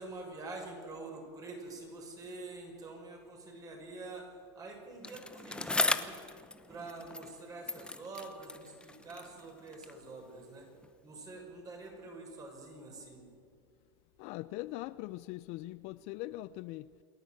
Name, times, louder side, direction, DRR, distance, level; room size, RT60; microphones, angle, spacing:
voice 1, 0.0-4.3 4.5-6.2 6.7-10.7 11.0-13.3, right 3 dB, 25° right, 6.3 m, -46 dB
Bicycle, 5.0-7.4 7.7-10.0 10.8-10.9, left 2 dB, 5° left, 0.9 m, -37 dB
voice 2, 14.2-16.9, left 17 dB, 50° left, 0.5 m, -41 dB
28.0 x 11.0 x 9.2 m
supercardioid pair, 125°, 14 cm